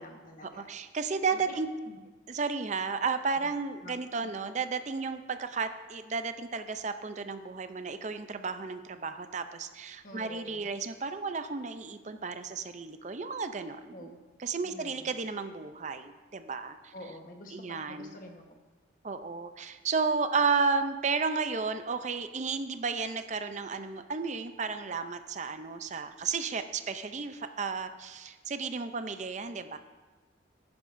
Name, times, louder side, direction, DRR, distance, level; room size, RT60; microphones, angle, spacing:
voice 1, 0.0-0.7 1.5-2.0 3.4-3.5 3.8-4.3 10.0-10.7 13.9-14.2 14.6-15.1 16.9-18.6, left 1 dB, 45° left, 3 dB, 1.3 m, -47 dB
voice 2, 0.5-1.7 2.3-16.9 17.5-18.2 19.0-29.8, right 4 dB, 40° right, 9 dB, 0.5 m, -33 dB
15.0 x 10.5 x 2.6 m, 1.3 s
head